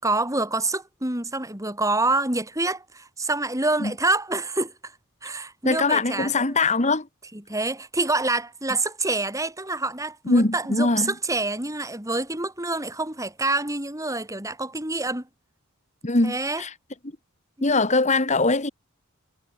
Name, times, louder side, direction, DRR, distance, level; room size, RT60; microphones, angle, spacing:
voice 1, 0.0-4.9 5.2-6.4 7.5-15.3 16.2-16.6 17.6-17.7, right 2 dB, 15° right, 5.1 m, -27 dB
voice 2, 5.7-7.1 10.3-11.1 16.0-16.7 17.6-18.7, left 3 dB, 35° left, 1.8 m, -22 dB
head